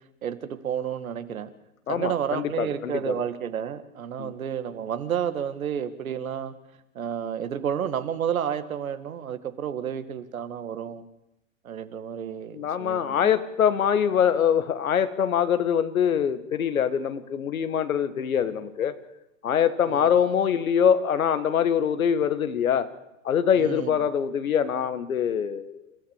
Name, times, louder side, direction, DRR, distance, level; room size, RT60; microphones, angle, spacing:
voice 1, 0.2-1.5 1.9-6.5 7.0-11.0 11.6-13.3 19.9-20.1 23.6-23.9, right 8 dB, 85° right, 10 dB, 2.0 m, -31 dB
voice 2, 1.9-3.2 4.2-4.3 12.5-19.0 19.4-22.9 23.2-25.8, left 8 dB, 85° left, 11 dB, 1.8 m, -24 dB
29.5 x 13.5 x 7.3 m, 0.87 s
hypercardioid pair, 110°, 41 cm